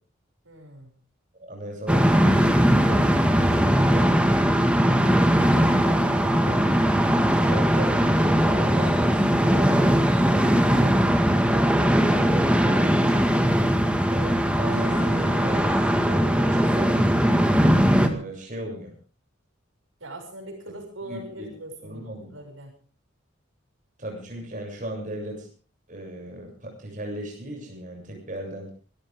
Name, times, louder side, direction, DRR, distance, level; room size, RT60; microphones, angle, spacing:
voice 1, 0.4-0.9 20.0-22.7, right 1 dB, 85° right, 3 dB, 6.7 m, -41 dB
voice 2, 1.3-3.1 3.4-4.1 4.9-6.8 7.4-9.7 10.3-11.0 11.4-13.3 14.1-17.0 18.0-18.9 21.1-21.5 21.8-22.3 24.0-25.5 25.9-28.7, right 1 dB, 40° right, 0 dB, 7.5 m, -37 dB
sound 1, 1.9-18.1, equal, 5° right, 1.9 m, -20 dB
sound 2, 14.7-17.0, left 2 dB, 80° left, 7.6 m, -41 dB
26.5 x 14.0 x 3.7 m, 0.39 s
head